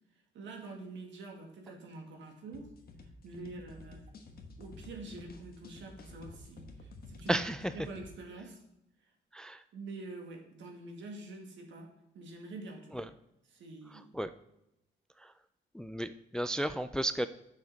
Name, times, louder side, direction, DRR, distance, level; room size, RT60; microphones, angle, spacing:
voice 1, 0.3-2.7 3.2-4.2 4.6-7.4 7.7-8.6 9.7-11.9 12.1-13.1 13.5-14.1, right 2 dB, 70° right, 2 dB, 1.9 m, -46 dB
sound 1, 2.5-8.1, left 2 dB, 50° left, 1.3 m, -51 dB
voice 2, 7.3-7.7 9.3-9.6 12.9-13.0 14.1-14.3 15.2-15.3 15.7-17.3, right 1 dB, 5° left, 12 dB, 0.3 m, -33 dB
7.2 x 6.3 x 4.0 m, 0.84 s
cardioid pair, 90°, 20 cm